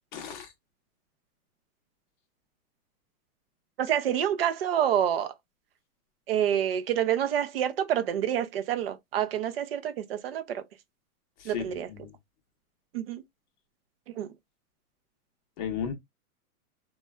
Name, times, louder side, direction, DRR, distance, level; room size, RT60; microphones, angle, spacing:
voice 1, 0.1-0.5 11.4-12.1 15.6-15.9, left 8 dB, 30° left, 0.7 m, -35 dB
voice 2, 3.8-5.3 6.3-10.6 11.4-11.9 12.9-13.2 14.2-14.3, right 10 dB, 45° right, 0.5 m, -27 dB
3.0 x 2.2 x 2.2 m
hypercardioid pair, 155°, 45 cm